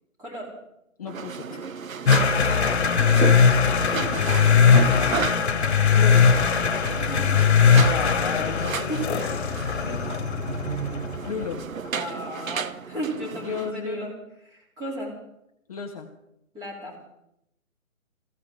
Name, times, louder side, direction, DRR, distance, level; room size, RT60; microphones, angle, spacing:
voice 1, 0.2-0.5 2.4-2.8 4.1-5.3 6.7-7.2 8.9-10.2 11.9-14.1 14.4-15.2 16.5-17.0, right 1 dB, 10° right, -2 dB, 3.3 m, -36 dB
voice 2, 1.0-1.7 3.7-4.3 5.9-6.3 7.7-9.2 11.3-11.6 13.4-14.1 15.7-16.1, left 6 dB, 25° left, 2 dB, 1.1 m, -33 dB
sound 1, 1.1-13.7, right 6 dB, 70° right, 1.0 m, -33 dB
sound 2, 2.1-11.5, left 6 dB, 50° left, 1.8 m, -20 dB
22.0 x 16.0 x 3.7 m, 0.82 s
hypercardioid pair, 160°, 42 cm